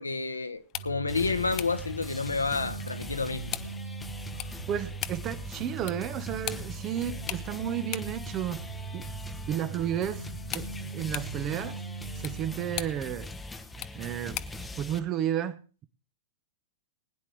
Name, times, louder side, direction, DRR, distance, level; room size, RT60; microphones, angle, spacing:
voice 1, 0.0-3.5, left 4 dB, 80° left, 1.2 m, -30 dB
sound 1, 0.5-14.7, left 16 dB, 35° left, 0.7 m, -43 dB
sound 2, 0.7-12.8, right 4 dB, 85° right, 2.7 m, -40 dB
sound 3, 1.1-15.0, left 2 dB, 10° left, 1.0 m, -42 dB
voice 2, 4.7-9.0 9.5-10.3 10.5-11.8 12.1-13.3 13.9-14.4 14.8-15.8, right 10 dB, 30° right, 1.1 m, -32 dB
20.5 x 10.0 x 3.4 m
figure-of-eight pair, 100°, 0 cm